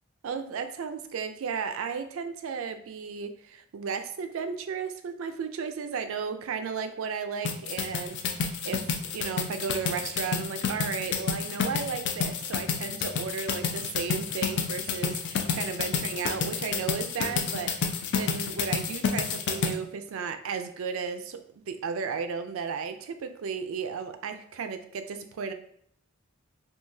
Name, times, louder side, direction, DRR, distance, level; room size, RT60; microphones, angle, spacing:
voice 1, 0.2-25.5, right 6 dB, 75° right, 9 dB, 0.4 m, -34 dB
sound 1, 7.5-19.7, left 6 dB, 60° left, 0.4 m, -29 dB
3.7 x 2.6 x 2.6 m, 0.68 s
head